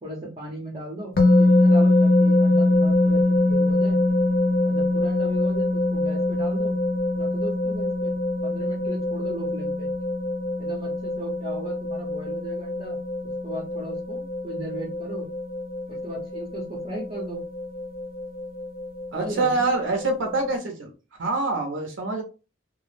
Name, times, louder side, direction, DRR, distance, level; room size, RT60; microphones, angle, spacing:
voice 1, 0.0-4.0 4.6-6.7 7.2-8.1 8.4-9.9 10.6-13.0 13.4-15.3 16.0-17.4 19.1-19.7, right 1 dB, 30° right, -2 dB, 0.6 m, -36 dB
sound 1, 1.2-20.5, left 2 dB, 50° left, 0.6 m, -23 dB
voice 2, 19.1-20.9 21.2-22.2, right 3 dB, 85° right, 3 dB, 0.5 m, -25 dB
2.2 x 2.0 x 3.1 m, 0.32 s
head